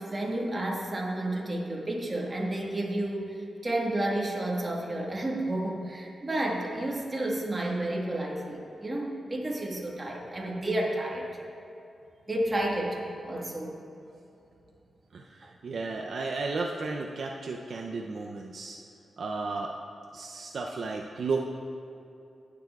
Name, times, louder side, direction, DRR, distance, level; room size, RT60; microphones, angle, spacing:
voice 1, 0.0-11.4 12.3-13.8, right 1 dB, 25° right, -2 dB, 1.6 m, -31 dB
voice 2, 15.6-18.8 19.2-19.7 20.1-21.4, right 3 dB, 65° right, 1 dB, 0.5 m, -33 dB
17.5 x 6.8 x 2.3 m, 2.7 s
cardioid pair, 85°, 0 cm